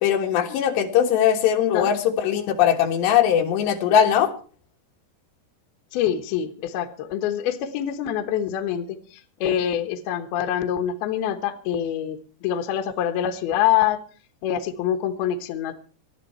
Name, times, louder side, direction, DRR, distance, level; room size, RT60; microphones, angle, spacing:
voice 1, 0.0-4.3, left 9 dB, 90° left, 4 dB, 3.6 m, -20 dB
voice 2, 5.9-14.0 14.4-15.7, left 10 dB, 75° left, 7 dB, 2.9 m, -25 dB
20.0 x 12.5 x 4.4 m, 0.42 s
omnidirectional pair, 4.8 m